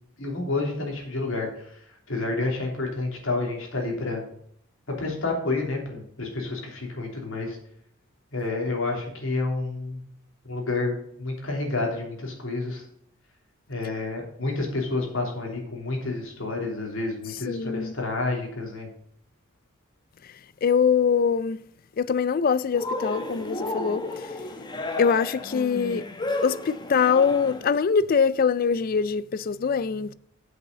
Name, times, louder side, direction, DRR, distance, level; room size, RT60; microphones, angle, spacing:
voice 1, 0.2-4.2 4.9-7.6 8.3-10.0 10.4-12.9 13.7-18.9, left 3 dB, 70° left, 3.1 m, -29 dB
voice 2, 17.5-17.9 20.6-21.6 22.0-24.0 25.0-26.0 26.4-30.1, left 6 dB, 45° left, 0.4 m, -23 dB
Cheering, 22.7-27.7, left 2 dB, 20° left, 1.0 m, -32 dB
8.0 x 6.2 x 6.8 m
head